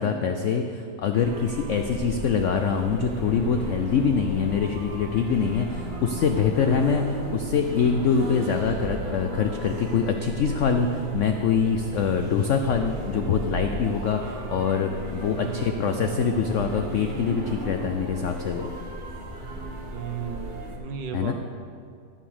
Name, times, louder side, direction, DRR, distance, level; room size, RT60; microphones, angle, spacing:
voice 1, 0.0-18.7 21.1-21.3, left 6 dB, 80° left, 5 dB, 0.6 m, -24 dB
sound 1, 1.1-20.8, right 2 dB, 30° right, 1.1 m, -35 dB
sound 2, 1.8-17.3, left 2 dB, 55° left, 1.3 m, -44 dB
voice 2, 14.2-14.7 15.3-15.8 19.9-21.3, right 8 dB, 80° right, 5 dB, 1.6 m, -35 dB
13.5 x 4.9 x 7.1 m, 2.3 s
omnidirectional pair, 1.9 m